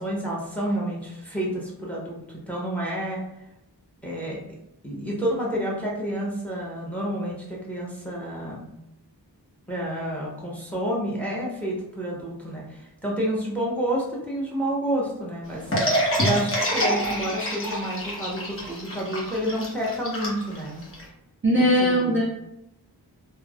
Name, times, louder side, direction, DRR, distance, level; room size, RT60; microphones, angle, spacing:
voice 1, 0.0-3.2 4.0-4.4 4.8-8.7 9.7-15.6 16.2-20.8 21.6-22.1, right 1 dB, 5° left, -4 dB, 0.9 m, -29 dB
sound 1, 15.7-21.0, equal, 35° left, 0.9 m, -26 dB
voice 2, 21.4-22.3, equal, 30° right, -4 dB, 0.8 m, -20 dB
3.1 x 2.1 x 2.3 m, 0.86 s
cardioid pair, 45°, 40 cm